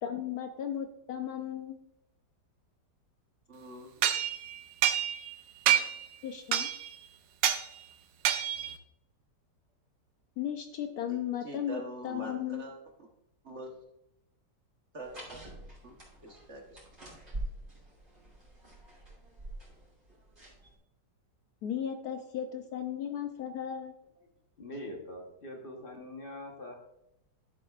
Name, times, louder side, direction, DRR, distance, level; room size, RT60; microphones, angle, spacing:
voice 1, 0.0-1.8 6.2-6.7 10.4-12.7 21.6-23.9, left 9 dB, 70° left, 6 dB, 1.0 m, -35 dB
voice 2, 3.5-3.9 11.1-12.8 13.4-13.8 14.9-15.4 15.8-16.0 16.2-16.8, right 1 dB, 45° right, 1 dB, 1.3 m, -44 dB
sound 1, 4.0-5.3 5.7-6.1 6.5-6.9 7.4-7.7 8.2-8.8, right 11 dB, 80° right, 1.3 m, -28 dB
sound 2, 15.0-20.7, right 2 dB, 30° right, 3.1 m, -45 dB
voice 3, 24.6-26.8, left 1 dB, 35° left, 1 dB, 1.1 m, -43 dB
12.5 x 7.5 x 2.4 m, 0.81 s
omnidirectional pair, 1.9 m